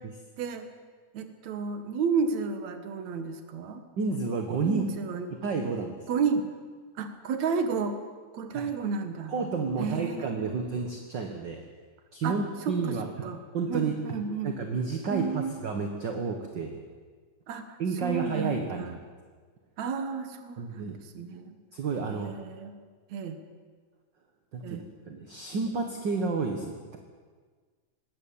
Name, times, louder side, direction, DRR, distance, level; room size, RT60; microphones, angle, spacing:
voice 1, 0.4-0.7 1.1-3.8 4.6-5.4 6.1-6.5 7.0-8.0 8.3-9.3 9.8-10.5 12.2-12.4 12.7-13.4 13.7-14.5 15.1-15.6 17.5-18.9 19.8-21.6 22.1-22.8 23.1-23.4 24.6-24.8, right 5 dB, 70° right, 8 dB, 2.8 m, -32 dB
voice 2, 4.0-4.8 5.3-6.1 8.5-8.7 9.3-11.6 12.1-13.1 13.5-13.9 14.4-16.8 17.8-19.0 20.6-21.0 21.7-22.3 24.5-27.0, right 4 dB, 45° right, 4 dB, 1.8 m, -31 dB
20.0 x 17.0 x 8.6 m, 1.5 s
omnidirectional pair, 3.3 m